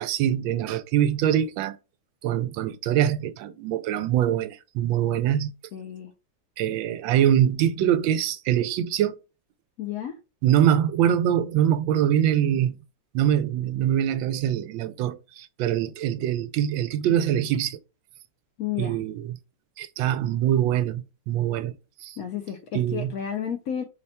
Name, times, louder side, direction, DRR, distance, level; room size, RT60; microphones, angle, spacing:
voice 1, 0.0-1.8 2.2-5.5 6.6-9.2 10.4-12.8 13.1-17.8 18.8-19.4 19.8-21.7 22.0-22.2 22.7-23.1, right 10 dB, 90° right, 1.3 m, -24 dB
voice 2, 5.7-6.1 9.8-10.2 18.6-19.0 22.2-23.8, left 9 dB, 70° left, 0.8 m, -31 dB
5.1 x 2.2 x 4.1 m
omnidirectional pair, 2.0 m